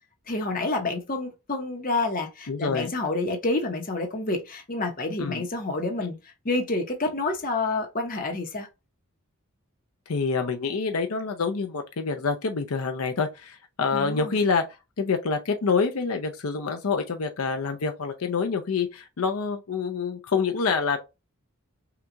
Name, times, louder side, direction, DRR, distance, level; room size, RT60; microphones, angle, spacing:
voice 1, 0.3-8.7 13.9-14.4, left 2 dB, 40° left, 0.9 m, -28 dB
voice 2, 2.5-2.9 5.2-5.4 10.1-14.7 15.0-21.0, left 5 dB, 80° left, 0.6 m, -27 dB
5.8 x 2.3 x 2.6 m
head